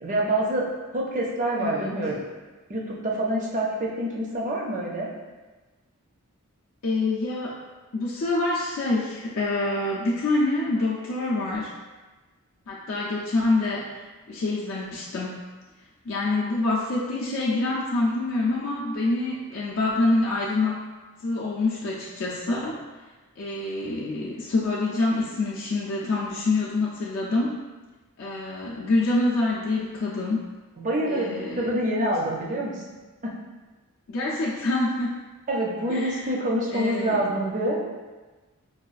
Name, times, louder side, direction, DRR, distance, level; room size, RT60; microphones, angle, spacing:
voice 1, 0.0-0.7 0.9-2.2 2.7-5.1 30.8-32.8 33.2-33.3 35.5-37.8, right 1 dB, 35° right, -2 dB, 0.5 m, -26 dB
voice 2, 1.6-2.0 6.8-7.6 7.9-11.7 12.7-15.4 16.1-20.9 21.2-22.8 23.4-27.6 28.2-30.5 31.1-31.7 34.1-35.2 35.9-36.3 36.7-37.2, left 2 dB, 65° left, -5 dB, 0.4 m, -26 dB
4.7 x 2.3 x 2.4 m, 1.2 s
head